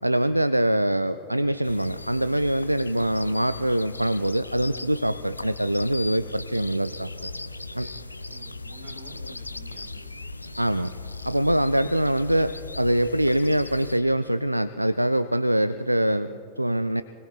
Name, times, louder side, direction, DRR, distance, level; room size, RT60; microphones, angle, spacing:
voice 1, 0.0-7.1 7.7-7.9 10.6-10.9 11.2-17.0, right 1 dB, 90° right, 14 dB, 0.3 m, -24 dB
sound 1, 1.6-14.0, left 2 dB, 85° left, 0.4 m, -38 dB
voice 2, 7.7-10.9, right 2 dB, 65° right, 4 dB, 2.4 m, -51 dB
30.0 x 20.0 x 2.4 m, 2.9 s
figure-of-eight pair, 90°, 0 cm